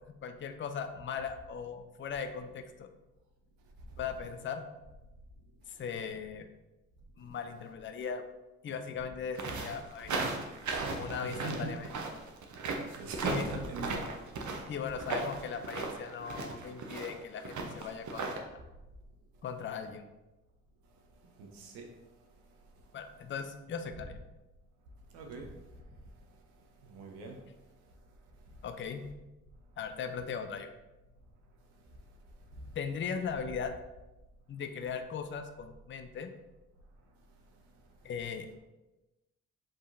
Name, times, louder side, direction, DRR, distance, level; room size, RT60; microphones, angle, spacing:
voice 1, 0.0-2.9 4.0-4.6 5.8-6.5 7.2-8.2 8.6-10.3 10.9-11.9 13.2-13.5 14.7-18.6 19.4-20.0 22.9-24.2 28.6-29.1 29.8-30.7 32.8-33.7 34.5-36.3 38.0-38.5, left 6 dB, 30° left, 7 dB, 0.5 m, -38 dB
sound 1, 9.3-18.4, right 3 dB, 50° right, 0.8 m, -36 dB
voice 2, 11.2-11.7 12.7-14.1 21.4-21.9 25.1-25.5 26.8-27.4, right 2 dB, 85° right, 2 dB, 0.8 m, -40 dB
5.1 x 3.6 x 2.6 m, 1.0 s
hypercardioid pair, 50°, 37 cm